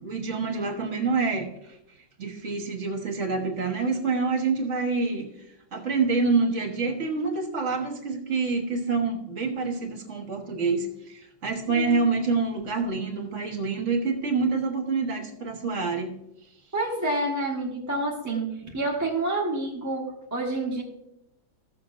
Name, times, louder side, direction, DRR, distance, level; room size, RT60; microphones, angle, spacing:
voice 1, 0.0-1.5 2.2-5.3 5.7-16.1, right 4 dB, 40° right, 3 dB, 1.6 m, -27 dB
voice 2, 11.7-12.1 16.7-20.8, right 2 dB, 10° right, -3 dB, 1.1 m, -28 dB
14.5 x 7.1 x 2.6 m, 0.82 s
omnidirectional pair, 2.1 m